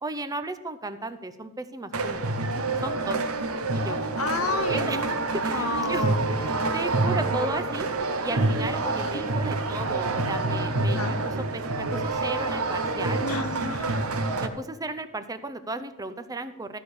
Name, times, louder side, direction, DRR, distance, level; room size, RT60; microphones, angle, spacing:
voice 1, 0.0-2.3 2.8-3.2 3.7-4.0 4.7-5.0 5.3-6.1 6.4-7.9 8.2-13.3 14.4-16.8, right 2 dB, 15° right, 11 dB, 0.5 m, -34 dB
sound 1, 1.9-14.5, right 2 dB, 75° right, 0.9 m, -27 dB
voice 2, 4.2-5.2 5.5-6.2 9.1-9.2 9.6-9.7 10.9-11.1 13.2-14.1, left 4 dB, 75° left, 10 dB, 0.9 m, -31 dB
13.5 x 4.8 x 7.0 m, 1.0 s
head